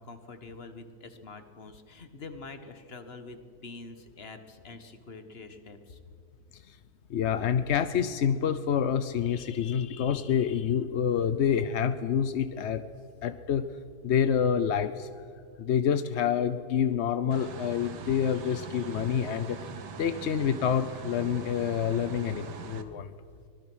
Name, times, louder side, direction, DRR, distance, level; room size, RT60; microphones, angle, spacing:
voice 1, 0.0-6.0, left 3 dB, 35° left, 8 dB, 1.6 m, -45 dB
voice 2, 7.1-12.8 13.2-13.7 14.0-15.1 15.6-19.6 20.0-23.1, left 8 dB, 60° left, 11 dB, 0.7 m, -27 dB
sound 1, 17.3-22.8, right 5 dB, 70° right, 1.8 m, -42 dB
24.5 x 19.0 x 6.2 m, 2.3 s
omnidirectional pair, 1.9 m